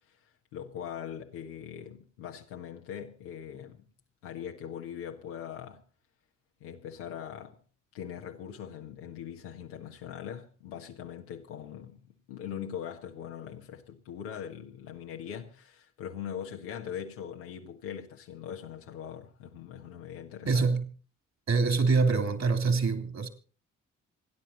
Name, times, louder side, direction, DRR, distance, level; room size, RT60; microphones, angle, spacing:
voice 1, 0.5-3.8 4.2-5.8 6.6-7.5 7.9-12.0 12.3-20.8, left 8 dB, 80° left, 1.6 m, -41 dB
voice 2, 20.4-20.8 21.5-23.3, right 4 dB, 45° right, 3.2 m, -25 dB
27.0 x 10.5 x 4.1 m
hypercardioid pair, 40°, 37 cm